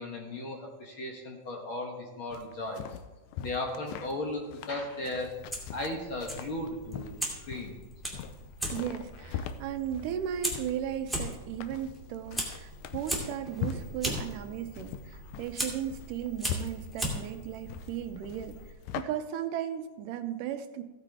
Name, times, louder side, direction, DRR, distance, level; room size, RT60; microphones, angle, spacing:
voice 1, 0.0-2.8 3.4-5.4 5.7-7.2 7.5-7.8, left 2 dB, 55° left, 0 dB, 1.5 m, -36 dB
sound 1, 2.3-19.0, left 8 dB, 80° left, 1.8 m, -41 dB
Fire, 5.3-18.7, right 1 dB, ahead, 1.6 m, -39 dB
voice 2, 8.7-20.8, right 10 dB, 80° right, 9 dB, 2.3 m, -36 dB
15.0 x 9.0 x 3.5 m, 1.1 s
omnidirectional pair, 3.7 m